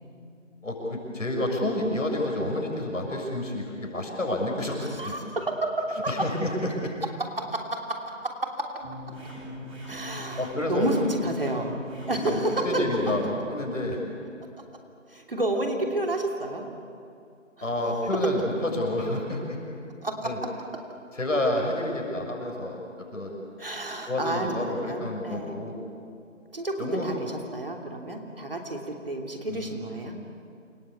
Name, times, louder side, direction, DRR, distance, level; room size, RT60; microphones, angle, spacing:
voice 1, 0.6-5.2 6.1-6.9 10.4-10.9 12.1-14.0 17.6-19.6 20.2-20.4 21.2-22.8 23.1-23.3 24.1-25.7 26.8-27.1 29.5-30.3, left 1 dB, 75° left, 0 dB, 6.9 m, -29 dB
voice 2, 4.8-6.1 7.3-7.8 8.0-8.3 8.6-8.7 9.9-11.7 12.1-12.8 15.1-16.7 17.6-17.7 20.0-20.3 23.6-25.6 26.5-30.2, right 1 dB, 45° right, 1 dB, 3.1 m, -30 dB
sound 1, 8.8-13.2, equal, 5° right, 2.9 m, -40 dB
28.5 x 22.5 x 8.6 m, 2.5 s
figure-of-eight pair, 180°, 39 cm